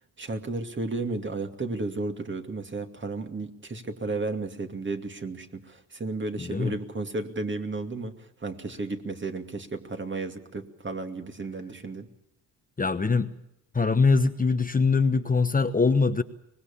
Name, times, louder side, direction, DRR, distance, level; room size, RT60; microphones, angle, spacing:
voice 1, 0.2-12.1, right 3 dB, 30° right, 6 dB, 2.5 m, -33 dB
voice 2, 6.4-6.7 12.8-13.3 13.7-16.2, left 4 dB, 25° left, 8 dB, 1.1 m, -23 dB
24.5 x 20.0 x 7.1 m, 0.88 s
cardioid pair, 90°, 36 cm